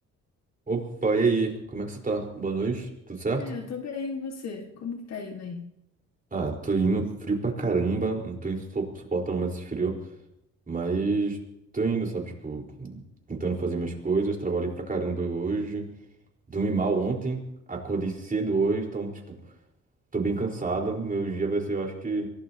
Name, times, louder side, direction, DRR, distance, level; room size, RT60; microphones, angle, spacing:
voice 1, 0.7-3.6 6.3-10.0 10.7-11.4 11.7-13.0 13.3-15.9 16.5-17.4 17.7-19.4 20.1-22.3, right 3 dB, 30° right, 0 dB, 4.5 m, -28 dB
voice 2, 3.4-5.7, left 5 dB, 60° left, 3 dB, 2.0 m, -35 dB
24.0 x 17.5 x 2.9 m, 0.82 s
cardioid pair, 90°, 30 cm